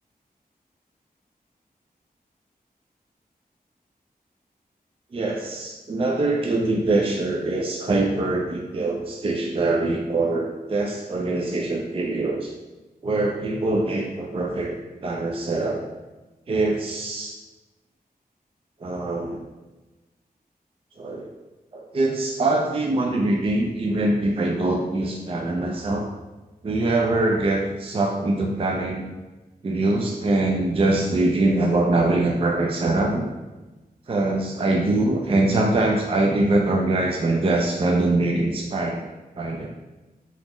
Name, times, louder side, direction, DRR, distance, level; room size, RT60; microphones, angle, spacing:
voice 1, 5.1-12.5 13.0-15.8 16.5-17.3 18.8-19.4 21.0-21.3 21.7-26.1 26.6-29.0 29.6-33.3 34.1-39.0 39.4-39.7, right 2 dB, 35° right, 1 dB, 0.4 m, -23 dB
4.0 x 4.0 x 3.0 m, 1.1 s
wide cardioid pair, 115°, 16 cm